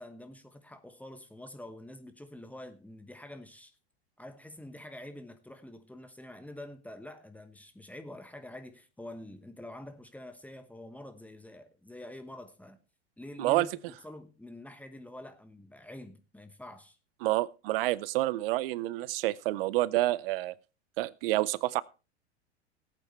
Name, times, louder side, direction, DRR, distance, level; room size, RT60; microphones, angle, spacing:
voice 1, 0.0-3.7 4.2-12.8 13.2-13.7 14.0-17.0, left 1 dB, 5° left, 1.2 m, -46 dB
voice 2, 17.2-20.5 21.0-21.8, right 17 dB, 55° right, 0.6 m, -28 dB
18.5 x 8.4 x 3.3 m
hypercardioid pair, 90°, 33 cm